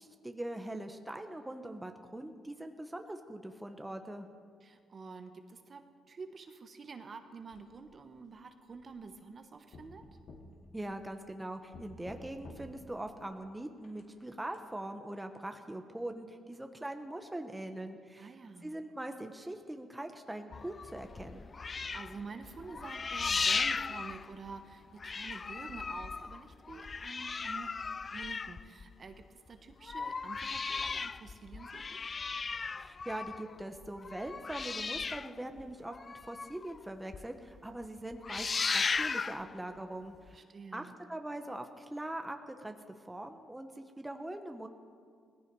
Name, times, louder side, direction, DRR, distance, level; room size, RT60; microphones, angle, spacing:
voice 1, 0.0-4.3 10.7-18.3 18.6-21.5 32.8-38.5 38.7-40.4 40.7-42.8 43.1-44.7, right 1 dB, 10° right, 6 dB, 1.0 m, -42 dB
voice 2, 4.6-10.0 18.2-18.7 21.9-27.8 28.1-32.0 40.3-41.0, right 4 dB, 40° right, 7 dB, 1.2 m, -48 dB
sound 1, 7.5-8.2 8.7-9.4 9.7-11.3 11.7-13.0 13.8-14.6, left 2 dB, 65° left, 2.4 m, -53 dB
sound 2, 20.5-24.7 25.0-29.2 29.7-36.8 37.1-37.2 37.6-37.8 38.1-39.5 40.3-40.4, left 4 dB, 35° left, 0.3 m, -36 dB
18.0 x 15.5 x 4.8 m, 2.1 s
cardioid pair, 90°, 0 cm